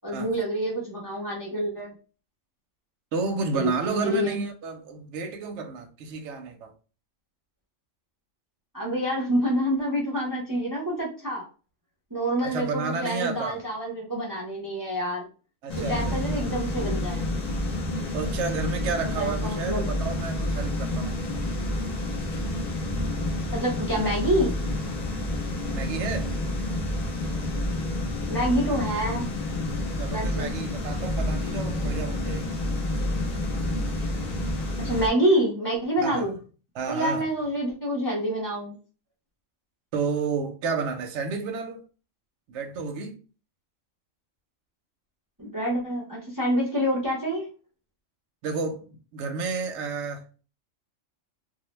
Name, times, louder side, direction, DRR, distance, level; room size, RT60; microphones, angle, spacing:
voice 1, 0.0-1.9 3.5-4.4 8.7-11.5 12.1-15.3 15.8-17.3 19.2-19.9 23.5-24.6 28.3-29.3 30.1-30.5 34.8-36.4 36.9-38.8 45.4-47.4, equal, 25° right, 0.5 m, -27 dB
voice 2, 3.1-6.7 12.4-13.6 15.6-16.2 18.1-21.2 25.7-26.3 30.0-32.6 36.0-36.3 36.7-37.2 39.9-41.8 42.5-43.2 48.4-50.2, right 4 dB, 70° right, 0.8 m, -31 dB
sound 1, 15.7-35.1, left 1 dB, 80° left, 0.3 m, -29 dB
2.3 x 2.1 x 3.0 m
omnidirectional pair, 1.3 m